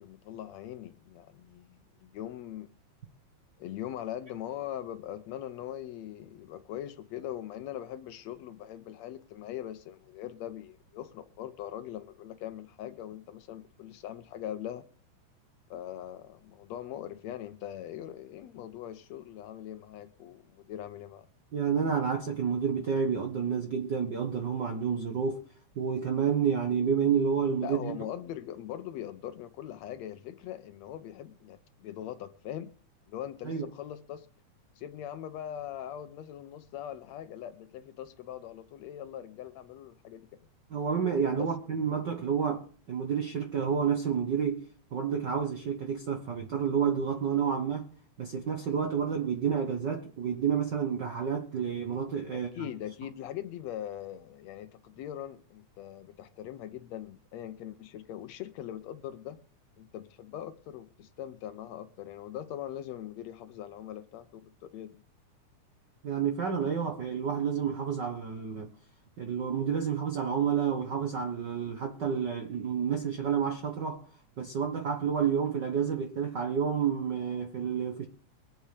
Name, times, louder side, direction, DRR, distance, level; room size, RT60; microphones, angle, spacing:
voice 1, 0.0-2.7 3.6-14.9 15.7-21.3 27.6-32.7 33.1-34.3 34.8-40.2 41.4-41.5 52.3-59.4 59.8-65.0, left 11 dB, 75° left, 1.7 m, -41 dB
voice 2, 21.5-25.4 25.7-28.0 33.4-33.7 40.7-44.6 44.9-47.9 48.2-52.7 66.0-68.7 69.2-74.0 74.4-78.1, right 7 dB, 65° right, 1.1 m, -29 dB
23.0 x 8.5 x 3.3 m
omnidirectional pair, 3.5 m